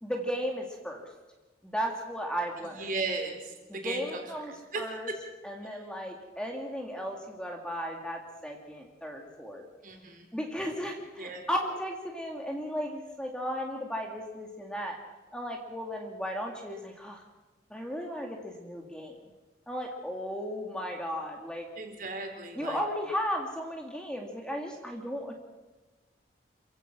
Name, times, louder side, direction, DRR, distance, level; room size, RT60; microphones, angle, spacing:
voice 1, 0.0-1.0 1.6-2.9 3.7-5.1 5.4-9.6 10.3-15.0 15.3-17.2 17.7-19.2 19.7-21.7 22.5-25.3, equal, 5° left, 1 dB, 2.1 m, -35 dB
voice 2, 2.8-3.5 3.8-4.2 4.7-4.8 9.8-10.3 11.2-11.4 21.8-22.8, right 3 dB, 50° right, 3 dB, 4.0 m, -35 dB
28.0 x 15.5 x 6.2 m, 1.2 s
head